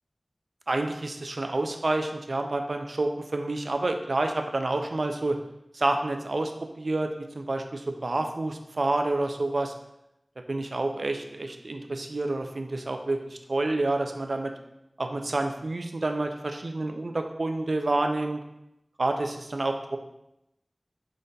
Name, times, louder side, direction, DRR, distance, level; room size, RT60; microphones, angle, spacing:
voice 1, 0.7-5.4 5.7-6.5 6.8-7.1 7.4-9.7 10.5-14.5 15.0-18.4 19.0-20.0, right 2 dB, 75° right, 5 dB, 0.3 m, -28 dB
3.9 x 3.7 x 2.2 m, 0.86 s
wide cardioid pair, 50°, 0 cm